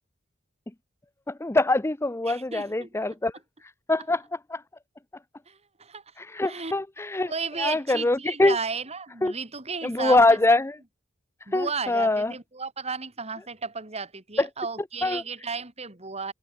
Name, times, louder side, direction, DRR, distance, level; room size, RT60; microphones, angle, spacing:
voice 1, 1.3-3.3 3.9-4.2 4.5-4.6 6.2-7.3 7.6-8.6 9.2-9.3 9.8-10.8 11.5-12.3 14.4-14.5 15.0-15.2, left 2 dB, 15° left, 0.6 m, -23 dB
voice 2, 2.3-2.9 5.5-6.0 6.4-6.7 7.3-10.2 11.5-16.3, right 5 dB, 30° right, 2.9 m, -34 dB
head